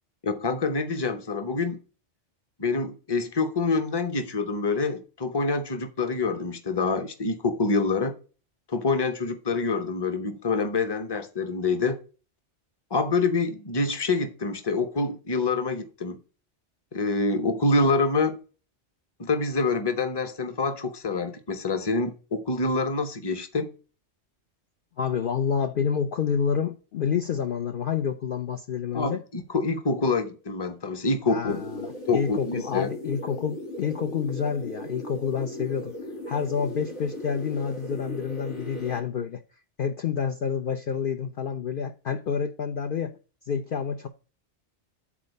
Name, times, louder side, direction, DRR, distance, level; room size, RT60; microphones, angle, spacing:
voice 1, 0.2-1.8 2.6-8.1 8.7-12.0 12.9-16.2 16.9-18.4 19.2-23.7 28.9-31.6 32.1-32.9, left 3 dB, 25° left, 0.8 m, -26 dB
voice 2, 25.0-29.2 31.3-31.8 32.1-35.9 36.3-39.4 39.8-43.2 43.5-44.1, left 7 dB, 55° left, 0.7 m, -28 dB
sound 1, 31.5-39.0, left 1 dB, 90° left, 2.5 m, -38 dB
8.6 x 4.2 x 5.3 m
omnidirectional pair, 1.2 m